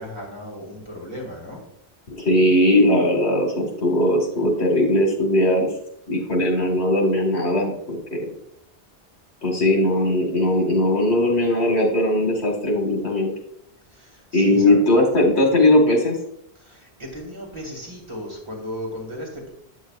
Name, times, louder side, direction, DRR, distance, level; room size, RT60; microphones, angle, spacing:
voice 1, 0.0-1.6 13.9-14.8 16.6-19.5, left 1 dB, 25° right, -2 dB, 1.9 m, -36 dB
voice 2, 2.1-5.7 6.1-8.3 9.4-13.3 14.3-16.2, left 1 dB, 75° left, 1 dB, 1.9 m, -19 dB
8.4 x 7.2 x 2.4 m, 0.71 s
omnidirectional pair, 1.1 m